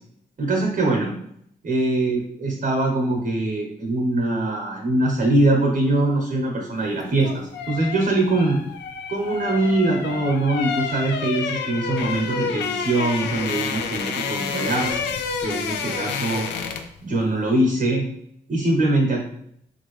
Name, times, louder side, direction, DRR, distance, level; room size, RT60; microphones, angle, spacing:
voice 1, 0.4-1.1 1.6-8.6 9.1-15.1 15.4-16.5 17.0-18.0 18.5-19.3, right 2 dB, 50° right, 1 dB, 0.9 m, -22 dB
sound 1, 7.0-17.0 17.3-17.5, left 6 dB, 85° left, 0.4 m, -29 dB
3.8 x 2.6 x 3.1 m, 0.73 s
supercardioid pair, 45°, 18 cm